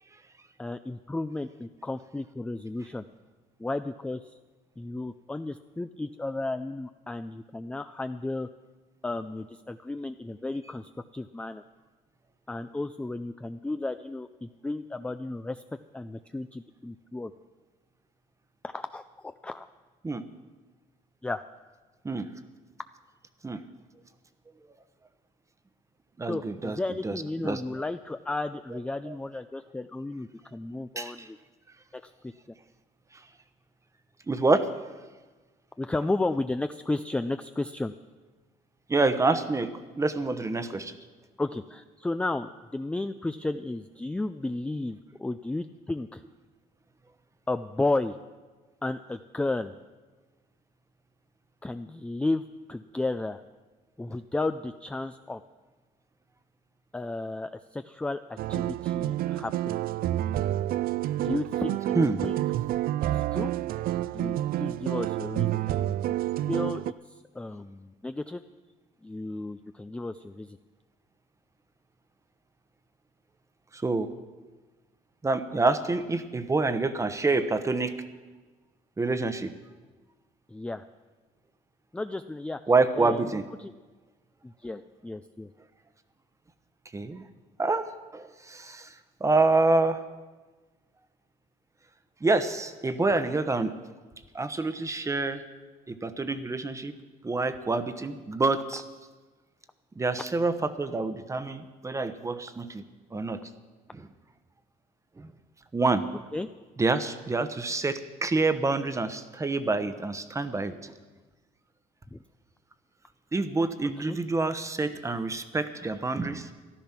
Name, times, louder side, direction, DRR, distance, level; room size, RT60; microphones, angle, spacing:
voice 1, 0.6-3.0 3.6-4.3 4.8-8.5 9.0-11.6 12.5-15.6 15.9-17.3 18.6-19.7 21.2-21.4 26.3-31.4 32.0-32.3 35.8-37.9 41.4-46.2 47.5-48.2 48.8-49.7 51.6-53.4 54.0-55.4 56.9-59.8 61.2-62.4 63.1-63.5 64.1-66.2 66.5-68.4 69.0-70.6 80.5-80.8 81.9-82.6 82.9-83.7 84.4-85.5 106.3-106.5 112.1-112.2 114.0-114.2, left 2 dB, 5° left, 9 dB, 0.4 m, -33 dB
voice 2, 26.2-26.8 27.0-27.2 27.4-27.6 31.0-31.1 34.3-34.7 38.9-39.7 40.0-41.0 61.9-62.2 73.7-74.1 75.2-77.9 79.0-79.5 82.7-83.4 86.9-87.2 87.6-87.9 88.1-88.9 89.2-90.0 92.2-93.7 94.3-95.4 96.0-97.0 97.2-98.8 100.0-102.8 103.1-103.4 103.9-104.0 105.2-105.3 105.7-106.0 106.8-110.9 113.3-116.5, right 3 dB, 15° right, 11 dB, 1.0 m, -27 dB
sound 1, 58.4-66.9, right 13 dB, 60° right, 0.4 m, -29 dB
14.0 x 12.5 x 5.9 m, 1.3 s
cardioid pair, 110°, 17 cm